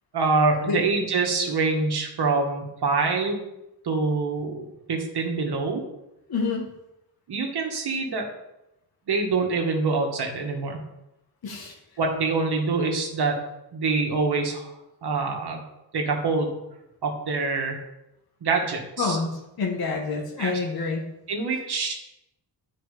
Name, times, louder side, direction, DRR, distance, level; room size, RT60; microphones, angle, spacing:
voice 1, 0.1-3.5 3.8-5.8 7.3-8.3 9.1-10.8 12.0-13.4 13.7-14.7 15.0-15.6 15.9-16.6 17.0-17.8 18.4-19.2 20.4-20.6 21.3-21.9, right 4 dB, 65° right, 2 dB, 1.8 m, -25 dB
voice 2, 6.3-6.7 11.4-11.7 19.0-21.1, left 4 dB, 60° left, -1 dB, 1.6 m, -27 dB
10.5 x 5.5 x 5.1 m, 0.88 s
wide cardioid pair, 145°, 41 cm